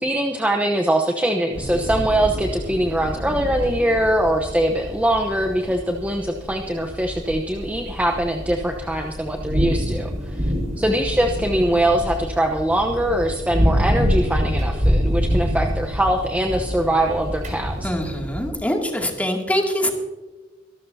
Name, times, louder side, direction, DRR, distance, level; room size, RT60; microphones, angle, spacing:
voice 1, 0.0-17.9, right 1 dB, 5° right, 1 dB, 0.9 m, -22 dB
sound 1, 1.5-18.5, equal, 40° right, 4.7 m, -26 dB
voice 2, 17.8-19.9, equal, 10° left, 1 dB, 2.4 m, -24 dB
25.0 x 12.5 x 2.8 m, 1.2 s
head